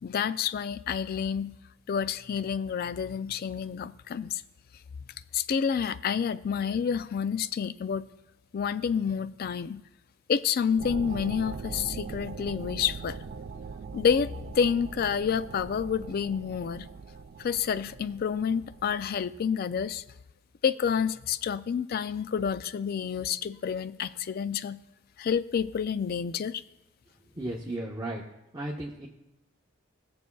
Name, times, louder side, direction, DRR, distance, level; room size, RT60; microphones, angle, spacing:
voice 1, 0.0-1.5 1.9-4.4 5.3-8.1 8.5-9.8 10.3-13.2 13.9-14.3 14.6-16.9 17.4-20.0 20.6-24.8 25.2-26.6, left 7 dB, 45° left, 15 dB, 0.3 m, -29 dB
sound 1, 10.8-19.9, right 5 dB, 45° right, 0.4 m, -41 dB
voice 2, 27.4-28.2 28.5-29.1, right 1 dB, 20° right, -3 dB, 0.8 m, -34 dB
19.5 x 6.9 x 2.3 m, 0.94 s
head